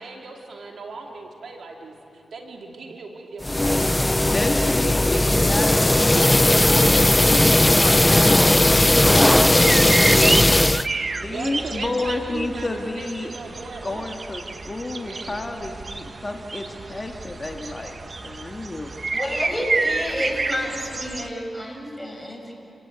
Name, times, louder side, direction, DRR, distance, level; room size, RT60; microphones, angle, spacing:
voice 1, 0.0-5.2 5.7-6.8 11.3-14.1 15.0-15.5, right 3 dB, 75° right, 1 dB, 2.6 m, -38 dB
sound 1, 3.4-10.9, left 1 dB, 20° left, 0.6 m, -17 dB
voice 2, 4.3-10.0 11.2-13.3 13.8-18.9, left 2 dB, 35° left, 2 dB, 2.0 m, -31 dB
sound 2, 8.9-21.3, right 3 dB, 50° right, 1.1 m, -30 dB
voice 3, 19.1-22.5, equal, 5° left, 0 dB, 7.0 m, -29 dB
29.0 x 17.0 x 8.4 m, 2.8 s
cardioid pair, 50°, 0 cm